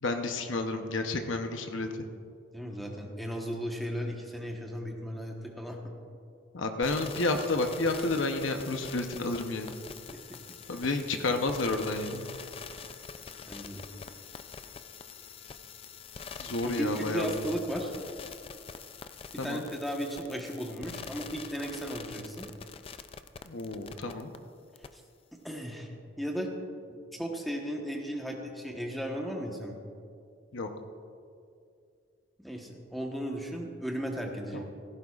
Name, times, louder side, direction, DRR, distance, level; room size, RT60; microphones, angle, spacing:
voice 1, 0.0-2.1 6.5-9.7 10.7-12.3 16.4-17.5 19.4-19.6 23.4-24.3 30.5-30.7 34.5-34.6, left 2 dB, 80° left, 5 dB, 0.8 m, -31 dB
voice 2, 2.5-5.8 10.3-10.4 13.5-13.8 16.6-18.0 19.3-22.5 24.9-25.0 25.4-25.9 26.2-26.5 26.9-29.7 32.4-34.6, equal, ahead, 0 dB, 1.1 m, -35 dB
sound 1, 6.8-24.4 24.8-24.9, left 6 dB, 30° left, 0.3 m, -45 dB
16.5 x 14.5 x 2.4 m, 2.4 s
head